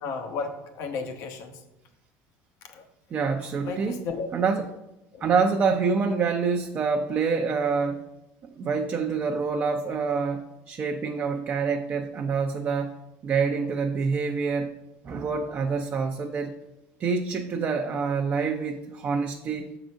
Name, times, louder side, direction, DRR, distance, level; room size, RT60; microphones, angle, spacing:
voice 1, 0.0-1.6 2.6-2.8 3.6-4.3 5.1-5.3, left 4 dB, 65° left, 5 dB, 1.0 m, -34 dB
voice 2, 3.1-4.0 4.3-4.7 5.2-8.0 8.4-12.9 13.2-14.7 15.0-16.5 17.0-19.7, right 5 dB, 35° right, 2 dB, 0.6 m, -26 dB
6.7 x 3.9 x 6.2 m, 0.93 s
cardioid pair, 130°, 6 cm